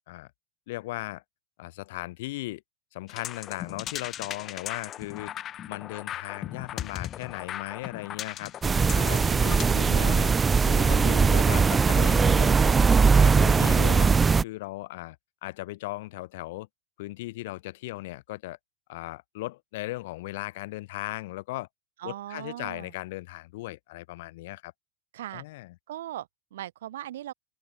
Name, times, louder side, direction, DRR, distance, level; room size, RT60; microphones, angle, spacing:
voice 1, 0.7-1.2 1.6-2.6 2.9-5.3 5.7-8.5 8.9-10.3 10.6-12.9 13.2-14.2 14.4-15.2 15.4-16.7 17.0-18.6 18.9-21.7 22.0-24.7 25.3-25.7, left 19 dB, 60° left, 1.9 m, -37 dB
sound 1, 3.1-9.6, left 11 dB, 35° left, 1.1 m, -38 dB
sound 2, 8.6-14.4, right 5 dB, 20° right, 0.6 m, -20 dB
voice 2, 9.3-10.1 22.0-22.9 25.1-25.4 25.9-27.3, right 13 dB, 70° right, 7.7 m, -39 dB
open air
hypercardioid pair, 90°, 0 cm